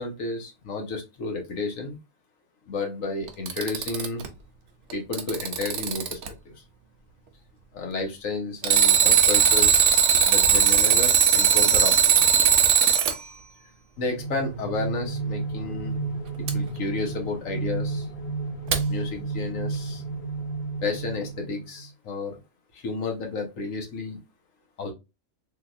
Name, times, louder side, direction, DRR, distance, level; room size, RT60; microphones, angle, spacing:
voice 1, 0.0-2.0 2.7-4.2 4.9-6.2 6.4-6.6 7.7-9.8 10.2-12.3 14.0-16.0 16.5-18.1 18.9-20.0 20.8-22.4 22.7-24.2 24.8-24.9, left 3 dB, 75° left, 2 dB, 1.3 m, -32 dB
Alarm, 3.3-4.3 4.9-6.3 8.6-13.2 16.5-16.6 18.7-18.8, right 8 dB, 70° right, 0.9 m, -19 dB
sound 1, 14.0-21.9, right 3 dB, 45° left, 0.7 m, -31 dB
3.4 x 2.8 x 2.4 m, 0.25 s
omnidirectional pair, 1.4 m